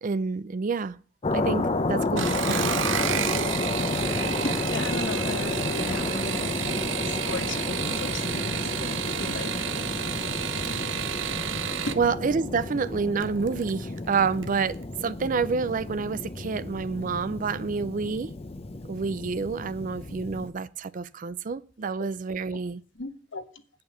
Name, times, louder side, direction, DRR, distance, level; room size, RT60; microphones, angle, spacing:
voice 1, 0.0-1.0 1.3-2.7 10.7-18.3 18.9-22.8, right 5 dB, 45° right, 0.4 m, -29 dB
sound 1, 1.2-20.5, left 2 dB, 30° left, 0.7 m, -31 dB
sound 2, 2.1-12.0 13.2-13.7 14.1-14.5 14.8-14.9, right 9 dB, 80° right, 0.6 m, -31 dB
voice 2, 4.4-9.7 11.9-12.0 21.8-22.1 23.0-23.4, left 2 dB, 75° left, 1.3 m, -36 dB
8.8 x 5.7 x 7.8 m
head